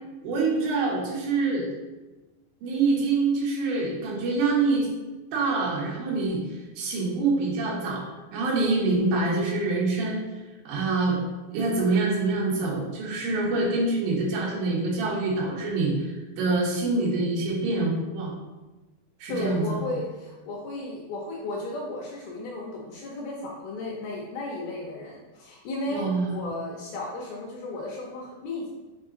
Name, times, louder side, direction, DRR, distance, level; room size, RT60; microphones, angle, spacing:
voice 1, 0.2-1.7 2.6-4.9 5.3-6.4 6.8-8.0 8.3-10.3 10.7-11.2 11.5-18.3 19.2-19.7 25.9-26.5, right 3 dB, 80° right, -3 dB, 3.6 m, -25 dB
voice 2, 19.3-28.7, left 2 dB, 75° left, -3 dB, 2.4 m, -34 dB
7.0 x 3.7 x 3.8 m, 1.2 s
omnidirectional pair, 5.1 m